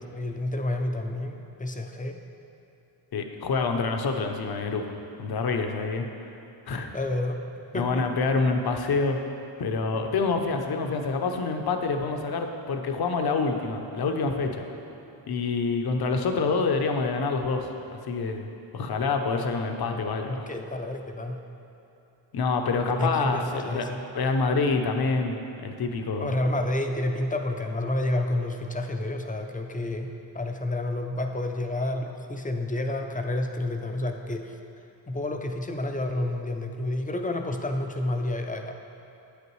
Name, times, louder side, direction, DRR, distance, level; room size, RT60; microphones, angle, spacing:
voice 1, 0.0-2.2 6.9-7.4 7.7-8.1 20.3-21.4 23.0-24.0 26.2-30.1 30.3-34.6 35.1-38.7, left 1 dB, 20° left, 4 dB, 0.4 m, -29 dB
voice 2, 3.1-6.1 6.7-6.9 7.7-9.2 9.6-14.7 15.3-18.5 18.7-20.5 22.3-23.9 24.1-25.4 25.6-26.4, left 4 dB, 55° left, 5 dB, 0.7 m, -27 dB
8.7 x 8.3 x 3.1 m, 2.9 s
wide cardioid pair, 115°, 46 cm